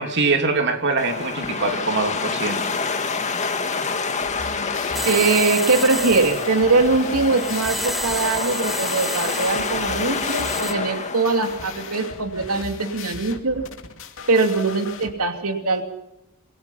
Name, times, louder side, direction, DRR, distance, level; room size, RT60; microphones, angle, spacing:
voice 1, 0.0-2.6, right 3 dB, 55° right, 5 dB, 2.8 m, -23 dB
sound 1, 1.0-12.2, left 4 dB, 35° left, 2.0 m, -28 dB
sound 2, 4.2-15.1, left 4 dB, 65° left, 2.6 m, -38 dB
sound 3, 4.9-10.7, equal, ahead, 2.2 m, -31 dB
voice 2, 5.0-13.6 14.3-15.8, right 3 dB, 85° right, 5 dB, 2.8 m, -21 dB
26.5 x 24.0 x 5.7 m, 0.87 s
head